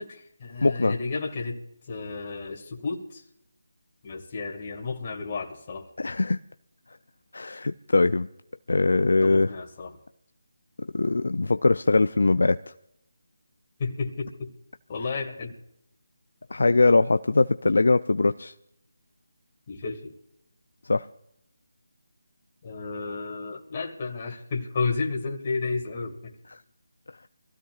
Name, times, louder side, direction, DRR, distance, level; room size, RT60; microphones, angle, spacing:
voice 1, 0.0-1.6 1.9-3.2 4.0-5.9 9.2-9.9 13.8-14.5 14.9-15.5 19.7-20.1 22.6-26.4, left 4 dB, 35° left, -1 dB, 2.2 m, -32 dB
voice 2, 0.6-1.0 6.0-6.4 7.3-8.3 8.7-9.5 10.8-12.6 16.5-18.5 20.9-21.1, left 3 dB, 75° left, 10 dB, 0.5 m, -21 dB
25.0 x 15.5 x 2.5 m, 0.76 s
figure-of-eight pair, 165°, 0 cm